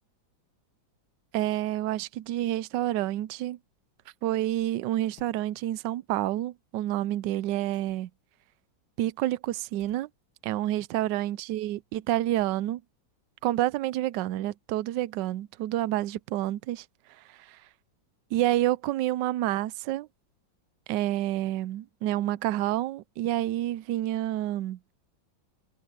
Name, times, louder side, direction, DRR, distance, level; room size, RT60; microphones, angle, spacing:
voice 1, 1.3-3.6 4.2-8.1 9.0-10.1 10.4-12.8 13.4-16.8 17.3-17.6 18.3-20.1 20.9-24.8, right 14 dB, 75° right, 1.2 m, -28 dB
sound 1, 5.2-5.4 7.7-8.3 9.8-10.1 12.4-12.9, left 6 dB, 85° left, 2.4 m, -59 dB
omnidirectional pair, 2.1 m